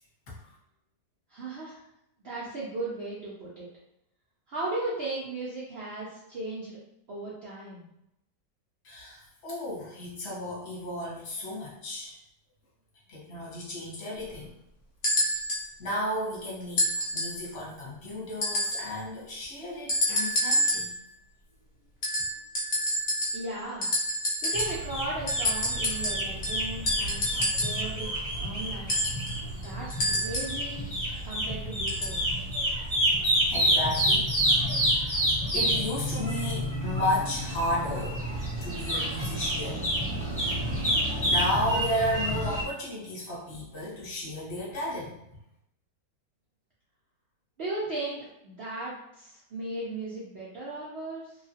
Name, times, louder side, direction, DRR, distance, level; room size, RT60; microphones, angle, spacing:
voice 1, 1.3-1.8 2.2-3.7 4.5-6.8 7.1-7.8 23.3-23.9 24.4-29.0 29.5-30.9 31.2-32.2 47.6-51.4, right 2 dB, 80° right, -6 dB, 0.5 m, -36 dB
voice 2, 8.8-12.2 13.1-14.5 15.8-20.9 33.4-34.3 34.8-35.2 35.5-38.2 38.6-39.9 41.2-45.2, left 1 dB, 45° left, -5 dB, 1.1 m, -33 dB
sound 1, 15.0-15.7 16.8-17.4 18.4-18.9 19.9-21.0 22.0-23.5 23.8-24.9 25.3-27.9 28.9-30.6 31.9-32.2 33.1-33.2, equal, 60° left, 0.6 m, -28 dB
sound 2, 24.5-42.6, equal, 15° left, 0.7 m, -29 dB
3.0 x 2.3 x 2.7 m, 0.82 s
omnidirectional pair, 1.9 m